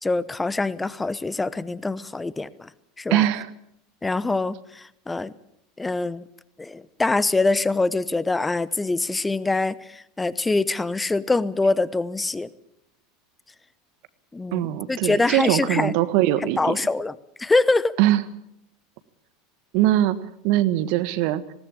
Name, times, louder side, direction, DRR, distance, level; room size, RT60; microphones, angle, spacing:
voice 1, 0.0-2.7 3.0-3.2 4.0-5.3 5.8-6.2 6.6-12.5 14.3-15.9 16.6-17.1 17.4-17.9, left 3 dB, 15° left, 18 dB, 0.9 m, -24 dB
voice 2, 3.1-3.5 14.5-16.8 18.0-18.2 19.7-21.4, right 14 dB, 60° right, 14 dB, 1.5 m, -22 dB
19.5 x 18.0 x 8.6 m, 0.76 s
hypercardioid pair, 85°, 0 cm